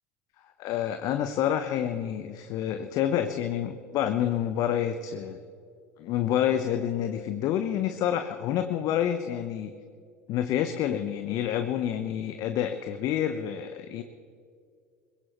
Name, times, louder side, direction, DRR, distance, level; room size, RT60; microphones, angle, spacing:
voice 1, 0.6-5.4 6.0-9.7 10.3-14.0, left 10 dB, 50° left, 8 dB, 0.9 m, -28 dB
22.5 x 20.5 x 3.1 m, 2.3 s
figure-of-eight pair, 70°, 8 cm